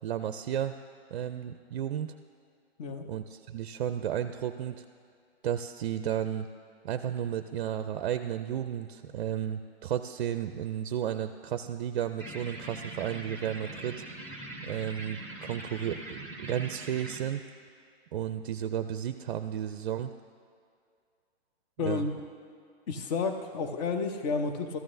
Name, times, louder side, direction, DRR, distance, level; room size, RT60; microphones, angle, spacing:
voice 1, 0.0-0.8 1.1-2.1 3.1-4.8 5.4-6.5 6.8-14.0 14.6-17.4 18.1-20.1 21.8-22.1, right 10 dB, 55° right, 9 dB, 0.4 m, -33 dB
sound 1, 12.2-17.2, right 1 dB, 10° left, 1.0 m, -42 dB
voice 2, 21.8-22.1 22.9-24.8, left 4 dB, 40° left, 6 dB, 0.9 m, -31 dB
14.0 x 12.0 x 2.6 m, 2.3 s
hypercardioid pair, 130°, 32 cm